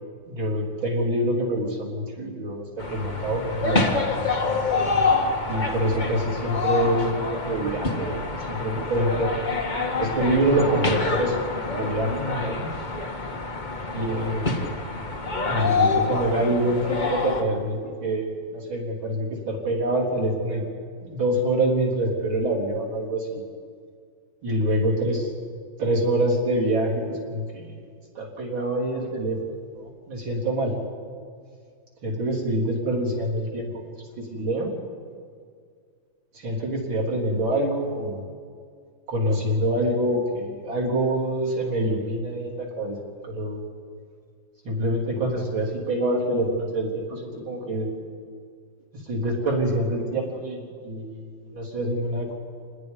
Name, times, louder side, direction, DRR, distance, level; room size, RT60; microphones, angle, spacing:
voice 1, 0.3-4.0 5.5-9.3 10.0-11.4 11.8-12.7 13.9-14.6 15.5-20.6 21.0-23.4 24.4-25.3 25.8-27.8 28.1-29.4 29.7-30.7 32.0-34.7 36.3-38.2 39.1-43.0 43.2-43.6 44.6-47.9 48.9-52.3, right 1 dB, 85° right, -2 dB, 4.6 m, -26 dB
sound 1, 2.8-17.4, left 3 dB, 25° left, 1.5 m, -26 dB
27.5 x 20.0 x 5.4 m, 2.1 s
omnidirectional pair, 2.1 m